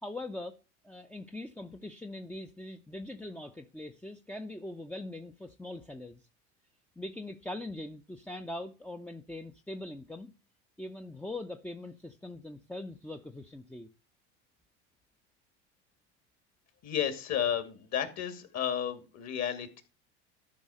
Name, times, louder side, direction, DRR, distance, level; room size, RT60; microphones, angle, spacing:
voice 1, 0.0-0.6 0.8-6.2 7.0-10.3 10.8-13.9, left 1 dB, 5° left, 0.7 m, -42 dB
voice 2, 16.8-19.8, left 9 dB, 45° left, 2.6 m, -32 dB
12.5 x 5.5 x 4.9 m
hypercardioid pair, 90°, 35 cm